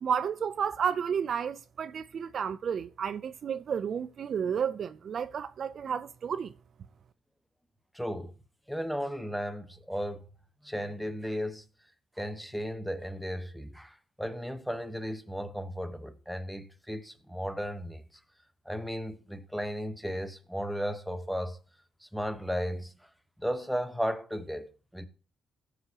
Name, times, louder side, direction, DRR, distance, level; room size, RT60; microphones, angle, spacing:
voice 1, 0.0-6.5, right 7 dB, 55° right, 0.5 m, -32 dB
voice 2, 7.9-8.3 8.7-10.3 10.6-11.6 12.2-18.0 18.6-21.6 22.0-23.1 23.4-25.1, equal, ahead, 1.1 m, -35 dB
16.0 x 6.8 x 2.9 m
cardioid pair, 90°, 0 cm